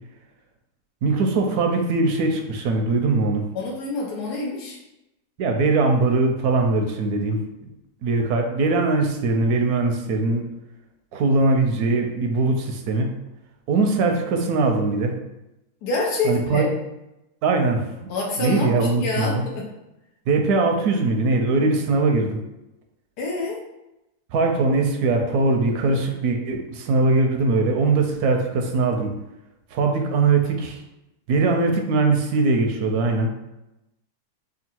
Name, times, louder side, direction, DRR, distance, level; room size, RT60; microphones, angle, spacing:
voice 1, 1.0-3.5 5.4-7.4 8.0-10.5 11.1-13.1 13.7-15.2 16.2-16.7 17.4-18.1 18.4-19.4 20.3-22.4 24.3-29.2 29.7-30.8 31.3-33.3, right 3 dB, 80° right, 4 dB, 1.1 m, -21 dB
voice 2, 3.5-4.8 15.8-16.7 18.1-19.7 23.2-23.6, left 3 dB, 80° left, -2 dB, 1.3 m, -27 dB
3.8 x 2.3 x 4.3 m, 0.92 s
omnidirectional pair, 1.7 m